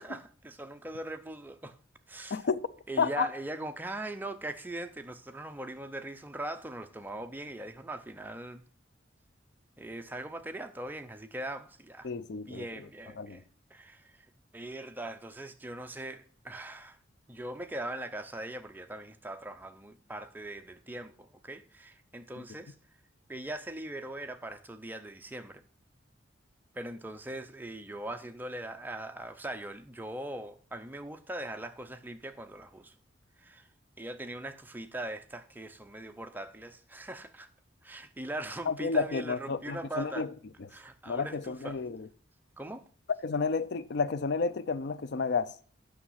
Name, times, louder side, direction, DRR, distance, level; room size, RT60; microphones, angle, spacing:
voice 1, 0.0-1.8 2.1-2.5 2.9-8.6 9.8-12.1 12.5-13.4 13.7-14.2 14.5-17.0 17.3-22.7 23.3-25.6 26.7-32.9 33.4-33.7 34.0-37.5 37.8-40.3 40.7-41.8 42.6-42.8, right 1 dB, 10° right, 0.6 m, -40 dB
voice 2, 2.3-2.6 3.0-3.3 12.0-12.7 13.2-13.4 38.7-40.3 41.1-42.0 43.2-45.5, left 5 dB, 60° left, 0.4 m, -31 dB
8.7 x 6.2 x 5.7 m
head